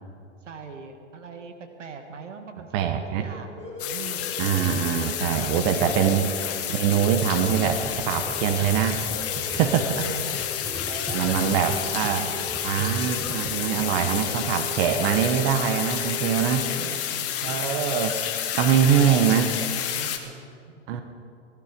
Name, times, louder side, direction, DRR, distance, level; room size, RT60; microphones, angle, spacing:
voice 1, 0.4-1.5 1.8-3.6 3.9-4.3 5.4-6.2 9.5-10.5 10.9-12.4 16.6-17.8 18.7-20.8, right 5 dB, 85° right, 6 dB, 1.7 m, -41 dB
voice 2, 2.7-3.3 4.4-6.3 6.7-9.0 9.5-9.9 11.1-12.3 12.6-16.7 17.4-18.2 18.5-19.5 20.9-21.0, right 9 dB, 55° right, 7 dB, 1.2 m, -23 dB
sound 1, 3.1-16.8, left 2 dB, 20° left, 4.2 m, -40 dB
sound 2, 3.8-20.2, left 10 dB, 40° left, 1.6 m, -30 dB
sound 3, 7.6-12.1 12.5-13.5 13.8-13.9, right 2 dB, 10° right, 1.8 m, -38 dB
19.0 x 12.0 x 5.2 m, 2.5 s
hypercardioid pair, 100°, 36 cm